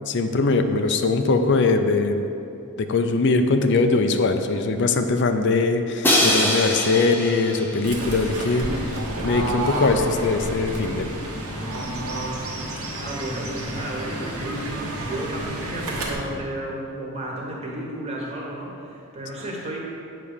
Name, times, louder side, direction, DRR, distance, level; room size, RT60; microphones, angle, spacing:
voice 1, 0.1-2.2 2.8-9.0 9.2-11.1 16.3-16.4, left 3 dB, 50° left, 7 dB, 0.5 m, -21 dB
Crash cymbal, 6.0-8.0, left 1 dB, 10° left, 0.8 m, -22 dB
Fowl / Bird, 7.8-16.1, right 1 dB, 85° right, 1.3 m, -30 dB
voice 2, 12.9-19.8, right 1 dB, 30° right, -3 dB, 1.3 m, -32 dB
8.7 x 3.3 x 6.6 m, 2.7 s
head